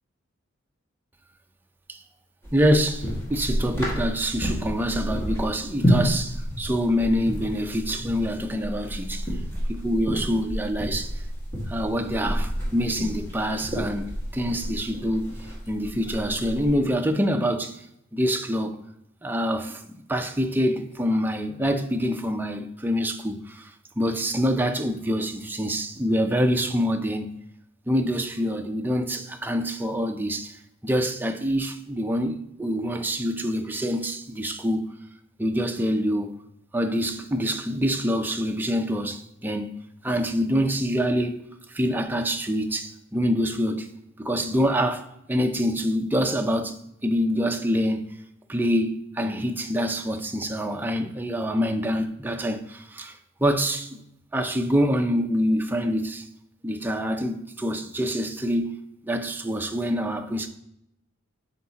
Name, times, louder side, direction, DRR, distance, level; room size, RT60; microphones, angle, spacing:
sound 1, 2.4-16.7, equal, 15° left, 1.7 m, -30 dB
voice 1, 2.5-9.3 9.7-11.1 11.7-15.3 15.7-17.8 18.1-18.8 19.2-23.7 24.0-27.4 27.9-30.6 30.8-34.9 35.4-36.3 36.7-39.8 40.0-41.5 41.7-43.9 44.2-48.1 48.5-53.1 53.4-54.0 54.3-56.2 56.6-60.5, equal, 10° right, 0.5 m, -26 dB
8.0 x 4.7 x 2.8 m
head